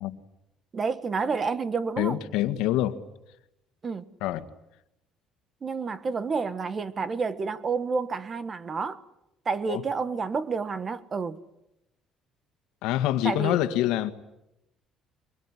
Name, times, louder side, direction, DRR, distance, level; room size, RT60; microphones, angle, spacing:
voice 1, 0.7-2.2 3.8-4.0 5.6-9.0 9.4-11.4 13.2-13.6, right 5 dB, 30° right, 1.5 m, -29 dB
voice 2, 2.0-3.0 4.2-4.5 9.7-9.8 12.8-14.1, left 13 dB, 90° left, 1.8 m, -26 dB
23.5 x 22.0 x 10.0 m
cardioid pair, 135°, 0 cm